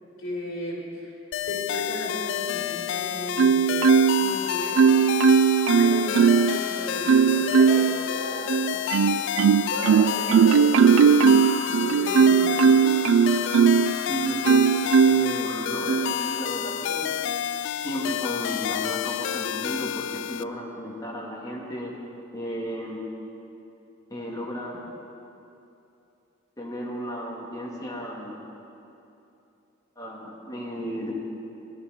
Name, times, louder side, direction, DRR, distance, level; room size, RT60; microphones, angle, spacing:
voice 1, 0.2-1.2 1.5-4.9 5.7-8.8 9.2-9.3 9.7-13.0, left 1 dB, 85° left, -3 dB, 3.4 m, -35 dB
sound 1, 1.3-20.4, left 10 dB, 60° left, 0.3 m, -30 dB
Marimba xylophone, 3.4-4.3 4.8-6.6 7.1-8.0 8.5-13.9 14.4-15.3 15.9-16.1, right 6 dB, 80° right, 0.4 m, -18 dB
voice 2, 14.0-14.6 15.0-17.1 17.8-22.0 22.3-23.0 24.1-24.9 26.6-28.4 30.0-31.1, equal, 20° left, -3 dB, 2.0 m, -34 dB
17.0 x 11.5 x 4.9 m, 2.8 s
head